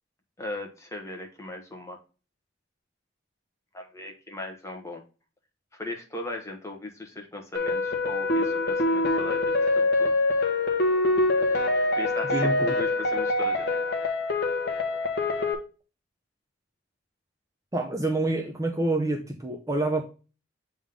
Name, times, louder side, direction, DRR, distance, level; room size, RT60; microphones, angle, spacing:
voice 1, 0.4-2.0 3.7-5.0 5.7-10.1 11.9-13.7, left 2 dB, 15° left, 2 dB, 1.3 m, -38 dB
sound 1, 7.5-15.5, left 2 dB, 55° left, 1.1 m, -25 dB
voice 2, 12.3-12.7 17.7-20.0, right 2 dB, 15° right, 3 dB, 0.6 m, -27 dB
7.4 x 3.6 x 3.6 m, 0.34 s
head